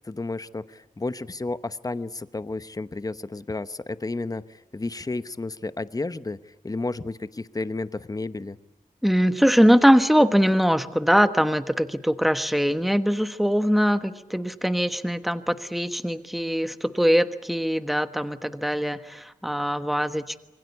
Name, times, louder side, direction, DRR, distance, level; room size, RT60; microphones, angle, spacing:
voice 1, 0.0-8.6, left 3 dB, 25° left, 13 dB, 0.9 m, -32 dB
voice 2, 9.0-20.4, equal, ahead, 10 dB, 1.3 m, -22 dB
26.5 x 23.5 x 8.2 m, 0.97 s
wide cardioid pair, 120°, 15 cm